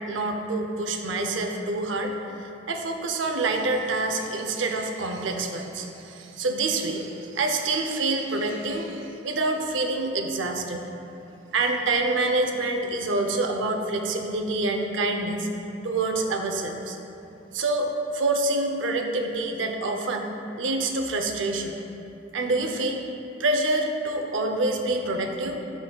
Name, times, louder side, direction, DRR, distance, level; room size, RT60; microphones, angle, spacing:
voice 1, 0.1-10.9 11.5-15.5 15.8-17.0 17.5-17.9 18.1-20.3 20.6-21.7 22.3-23.1 23.4-25.6, right 2 dB, 80° right, 4 dB, 0.6 m, -27 dB
10.5 x 3.9 x 2.3 m, 2.8 s
head